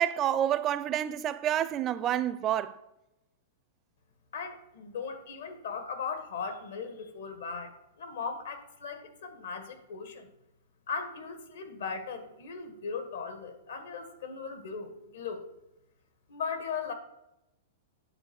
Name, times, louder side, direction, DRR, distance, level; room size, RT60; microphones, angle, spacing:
voice 1, 0.0-2.8, right 11 dB, 25° right, 0.4 m, -28 dB
voice 2, 4.3-10.3 10.9-15.4 16.3-16.9, left 5 dB, 75° left, 1.7 m, -38 dB
9.8 x 4.5 x 7.0 m
hypercardioid pair, 155°, 0 cm